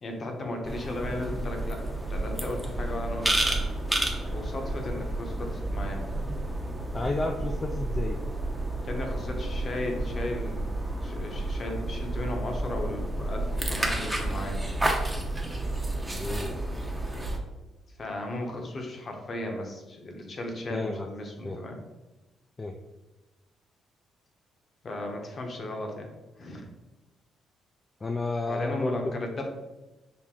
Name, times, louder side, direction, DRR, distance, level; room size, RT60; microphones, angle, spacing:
voice 1, 0.0-3.6 3.9-6.1 8.8-14.6 17.9-21.8 24.8-26.7 28.5-29.5, left 1 dB, 45° left, 2 dB, 0.8 m, -36 dB
sound 1, 0.6-17.4, right 1 dB, 10° right, 0.7 m, -31 dB
voice 2, 6.9-8.2 16.2-16.6 20.7-21.1 21.4-21.6 22.6-22.8 28.0-29.0, left 2 dB, 25° left, 3 dB, 0.3 m, -31 dB
5.9 x 2.1 x 3.6 m, 1.1 s
cardioid pair, 90°, 0 cm